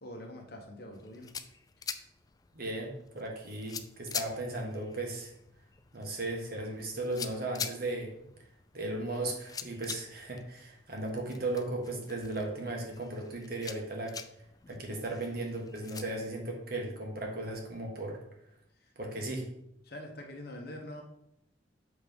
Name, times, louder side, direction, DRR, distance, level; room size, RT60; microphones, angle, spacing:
voice 1, 0.0-1.3 14.7-15.0 18.8-18.9 19.8-21.0, left 1 dB, 55° left, 2 dB, 1.2 m, -45 dB
sound 1, 0.9-16.0, left 6 dB, 20° left, 0.3 m, -45 dB
voice 2, 2.5-5.3 5.9-8.1 8.7-14.2 14.7-18.2 19.0-19.5, right 2 dB, 55° right, 1 dB, 1.5 m, -36 dB
7.7 x 3.6 x 5.2 m, 0.79 s
head